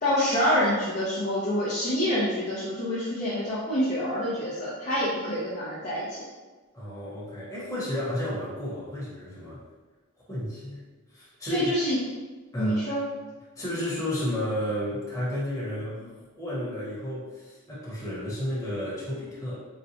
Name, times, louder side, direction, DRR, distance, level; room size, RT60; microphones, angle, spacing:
voice 1, 0.0-6.2 11.5-12.0 12.6-13.0, equal, 35° left, -9 dB, 0.6 m, -26 dB
voice 2, 6.7-9.6 10.3-10.8 11.1-11.7 12.5-12.9 13.6-16.1 16.4-19.6, left 1 dB, 15° left, -8 dB, 1.0 m, -32 dB
4.0 x 2.2 x 2.7 m, 1.3 s
head